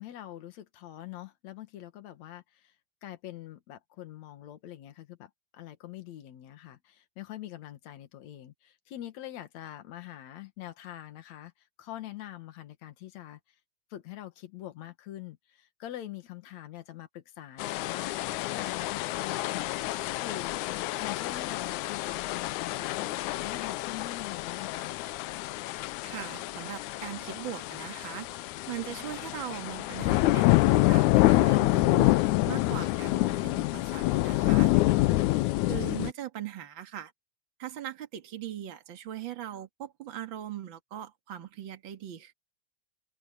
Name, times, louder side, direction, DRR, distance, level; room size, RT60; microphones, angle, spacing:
voice 1, 0.0-2.7 3.0-11.5 11.8-13.4 13.9-19.8 20.2-20.6 21.0-23.1 23.4-24.9 35.1-35.2, left 13 dB, 70° left, 2.8 m, -44 dB
sound 1, 17.6-36.1, left 18 dB, 85° left, 2.1 m, -27 dB
sound 2, 25.3-35.9, left 4 dB, 30° right, 3.9 m, -58 dB
voice 2, 26.0-28.3 28.7-34.7 35.7-37.1 37.6-42.3, right 11 dB, 45° right, 2.3 m, -40 dB
open air
omnidirectional pair, 3.3 m